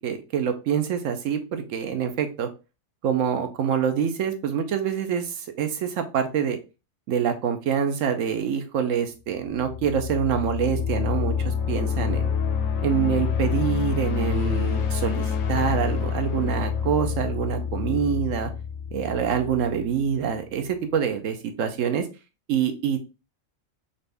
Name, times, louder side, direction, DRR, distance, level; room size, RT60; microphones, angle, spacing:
voice 1, 0.0-2.5 3.0-6.6 7.1-12.3 12.8-18.5 18.9-22.1 22.5-23.0, right 8 dB, 75° right, 7 dB, 1.1 m, -26 dB
sound 1, 9.5-20.2, left 7 dB, 80° left, 1.0 m, -27 dB
4.1 x 2.6 x 3.3 m, 0.30 s
omnidirectional pair, 1.4 m